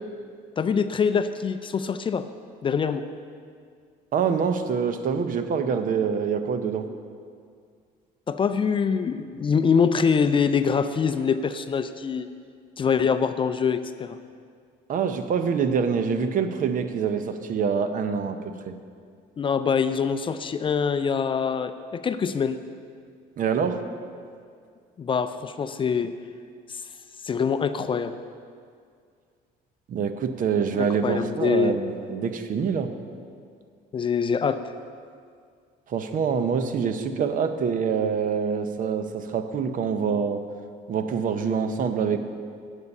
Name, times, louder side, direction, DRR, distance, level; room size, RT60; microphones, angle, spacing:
voice 1, 0.6-2.2 2.6-3.0 8.3-12.3 12.8-14.2 19.4-22.6 25.0-26.1 26.7-26.8 27.2-28.1 30.8-31.8 33.9-34.6, left 6 dB, 30° left, 10 dB, 0.4 m, -24 dB
voice 2, 4.1-6.9 14.9-18.7 23.4-23.8 29.9-32.9 35.9-40.4 40.9-42.2, right 6 dB, 55° right, 9 dB, 0.8 m, -25 dB
9.6 x 8.2 x 5.4 m, 2.2 s
cardioid pair, 110°, 17 cm